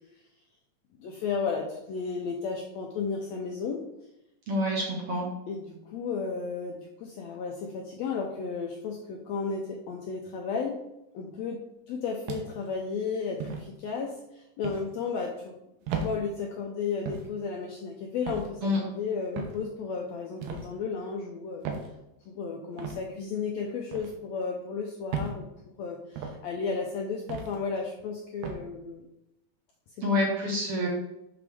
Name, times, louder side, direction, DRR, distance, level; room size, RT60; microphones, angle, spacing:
voice 1, 1.0-3.8 5.5-10.8 11.1-11.6 11.9-15.5 16.0-21.6 22.3-29.1 30.0-30.1, left 5 dB, 85° left, 1 dB, 1.5 m, -33 dB
voice 2, 4.5-5.3 18.6-18.8 30.0-30.9, left 1 dB, 60° right, -2 dB, 1.7 m, -27 dB
sound 1, 12.3-12.7 13.4-13.7 14.6-14.9 15.9-16.1 17.1-17.3 18.3-18.5 19.4-19.6 20.4-20.7 21.6-21.9 22.8-23.0 23.9-24.1 25.1-25.4 26.2-26.4 27.3-27.6 28.4-28.6, right 5 dB, 90° right, 2.5 m, -34 dB
6.6 x 5.9 x 3.5 m, 0.88 s
omnidirectional pair, 3.8 m